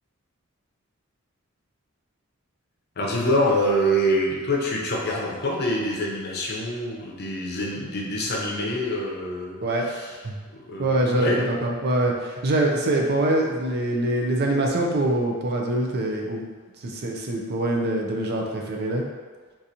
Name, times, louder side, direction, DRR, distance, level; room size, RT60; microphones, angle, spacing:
voice 1, 3.0-10.2 10.6-11.4, equal, 50° left, -2 dB, 0.7 m, -25 dB
voice 2, 10.8-16.4 16.8-19.0, right 1 dB, 50° right, 0 dB, 0.5 m, -24 dB
3.8 x 2.6 x 2.8 m, 1.5 s
head